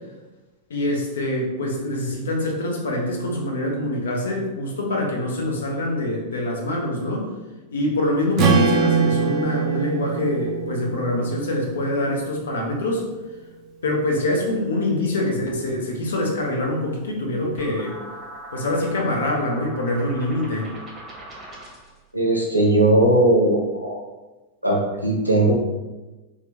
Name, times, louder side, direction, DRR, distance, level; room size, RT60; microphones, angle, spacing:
voice 1, 0.7-7.3 7.7-13.0 13.8-18.0 18.5-20.7, left 1 dB, 65° left, 0 dB, 0.7 m, -25 dB
Strum, 8.4-12.6, right 5 dB, 35° right, 0.4 m, -23 dB
sound 1, 17.6-22.0, right 1 dB, 20° right, 0.8 m, -39 dB
voice 2, 22.1-24.1 24.6-25.6, right 1 dB, 90° right, -1 dB, 0.5 m, -18 dB
2.9 x 2.2 x 3.4 m, 1.1 s
figure-of-eight pair, 90°, 0 cm